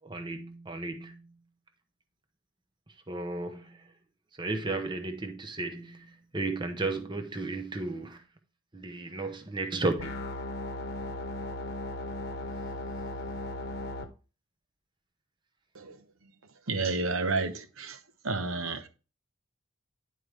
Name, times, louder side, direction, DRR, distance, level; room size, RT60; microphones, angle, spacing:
voice 1, 0.0-1.3 3.1-3.8 4.4-8.2 8.7-10.2, right 2 dB, 20° right, 0.9 m, -34 dB
sound 1, 10.0-14.0, left 1 dB, 50° left, 1.0 m, -36 dB
voice 2, 16.7-18.0 18.2-18.9, right 3 dB, 75° right, 1.0 m, -30 dB
11.0 x 4.7 x 3.3 m
head